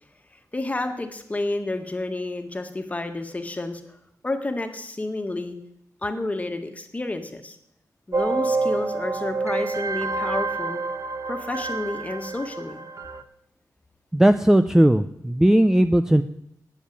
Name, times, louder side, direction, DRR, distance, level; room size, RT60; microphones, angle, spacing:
voice 1, 0.5-3.8 4.2-5.6 6.0-7.6 8.1-10.8 11.3-12.9, left 2 dB, 20° left, 6 dB, 1.7 m, -30 dB
sound 1, 8.1-13.2, right 3 dB, 50° right, 1.2 m, -28 dB
voice 2, 14.1-16.2, right 1 dB, 5° right, 9 dB, 0.5 m, -17 dB
18.5 x 7.4 x 8.6 m, 0.76 s
wide cardioid pair, 130°, 7 cm